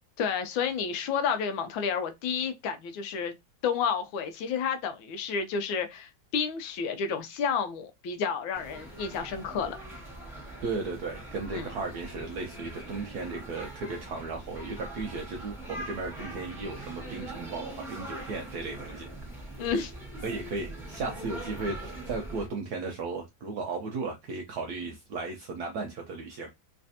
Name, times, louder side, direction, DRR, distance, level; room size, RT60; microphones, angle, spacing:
voice 1, 0.2-3.3 3.6-9.8 11.5-11.7 19.6-19.9, left 6 dB, 75° left, 1.3 m, -30 dB
sound 1, 8.5-22.5, right 1 dB, ahead, 1.5 m, -42 dB
voice 2, 10.6-19.1 19.5-19.7 20.2-26.5, right 3 dB, 70° right, 0.9 m, -35 dB
3.3 x 3.2 x 2.6 m
omnidirectional pair, 2.3 m